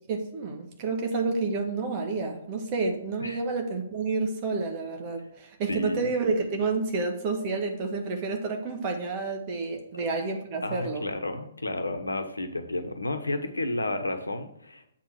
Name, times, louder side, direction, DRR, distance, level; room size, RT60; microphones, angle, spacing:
voice 1, 0.1-11.0, right 3 dB, 30° right, 2 dB, 1.6 m, -29 dB
voice 2, 5.7-6.1 9.9-10.0 10.6-14.9, left 2 dB, 75° left, 8 dB, 1.2 m, -32 dB
8.0 x 4.6 x 6.8 m, 0.73 s
figure-of-eight pair, 125°, 0 cm